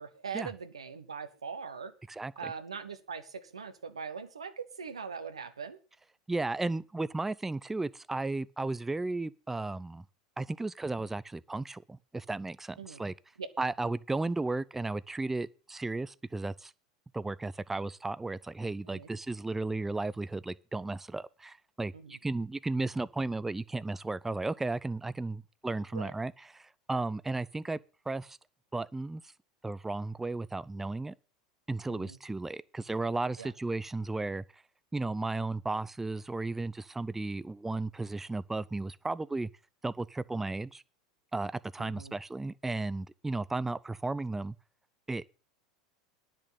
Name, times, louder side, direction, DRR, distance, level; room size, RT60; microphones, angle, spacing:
voice 1, 0.0-1.9 2.4-5.8 12.8-13.0 13.4-13.5 18.9-19.1 21.9-22.2 25.9-26.1 31.9-32.2 33.4-33.5 41.8-42.1, right 6 dB, 90° right, 1.2 m, -41 dB
voice 2, 2.1-2.5 6.3-10.0 10.4-13.1 13.6-16.7 17.1-27.8 28.1-28.4 28.7-29.2 29.6-31.1 31.7-34.4 34.9-39.5 39.8-40.8 41.3-44.5 45.1-45.3, right 2 dB, 10° right, 0.5 m, -34 dB
10.0 x 6.3 x 8.2 m
hypercardioid pair, 85°, 3 cm